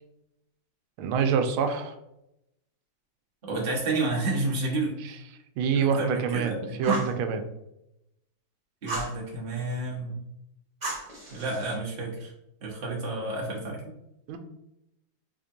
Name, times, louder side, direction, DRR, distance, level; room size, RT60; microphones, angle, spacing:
voice 1, 1.0-2.0 5.0-5.2 5.6-7.5 14.3-14.4, right 6 dB, 85° right, 6 dB, 1.4 m, -26 dB
voice 2, 3.4-4.9 5.7-7.0 8.8-10.2 11.3-12.3 12.6-13.8, right 2 dB, 40° right, -3 dB, 0.8 m, -30 dB
Fire, 6.8-7.2 8.9-9.2 10.8-11.7, right 2 dB, 25° right, 1.4 m, -34 dB
3.6 x 3.4 x 2.6 m, 0.84 s
omnidirectional pair, 2.2 m